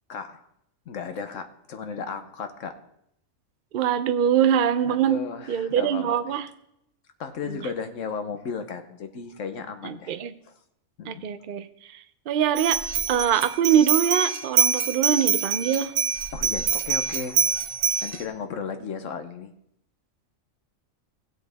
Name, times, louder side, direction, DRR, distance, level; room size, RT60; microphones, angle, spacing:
voice 1, 0.1-0.4 0.9-2.8 4.8-6.4 7.2-10.2 11.0-11.3 16.3-17.4 18.0-19.5, left 5 dB, 70° left, 8 dB, 1.3 m, -35 dB
voice 2, 3.7-6.5 7.4-7.6 9.8-10.3 11.1-11.7 12.3-12.8 13.1-15.9, right 9 dB, 55° right, 11 dB, 0.6 m, -23 dB
sound 1, 12.6-18.2, right 7 dB, 85° right, 1.3 m, -25 dB
16.5 x 8.1 x 3.4 m, 0.74 s
omnidirectional pair, 1.4 m